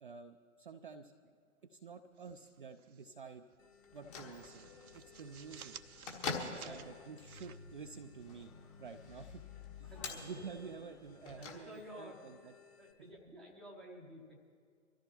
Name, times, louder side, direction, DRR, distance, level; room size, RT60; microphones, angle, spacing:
voice 1, 0.0-1.1 1.7-3.4 3.9-5.8 6.3-8.5 8.8-9.4 9.8-9.9 10.2-12.5, right 5 dB, 40° right, 5 dB, 0.4 m, -50 dB
sound 1, 2.2-3.1 3.4-3.6 4.0-8.4, right 8 dB, 80° right, 0.7 m, -55 dB
sound 2, 3.6-12.9, left 7 dB, 60° left, 2.3 m, -64 dB
Bell / Microwave oven, 3.8-12.1, left 4 dB, 30° left, 1.5 m, -47 dB
voice 2, 6.5-6.9 9.8-10.5 11.3-12.4 12.8-14.4, equal, ahead, -3 dB, 0.7 m, -52 dB
24.0 x 13.5 x 3.0 m, 2.1 s
figure-of-eight pair, 135°, 43 cm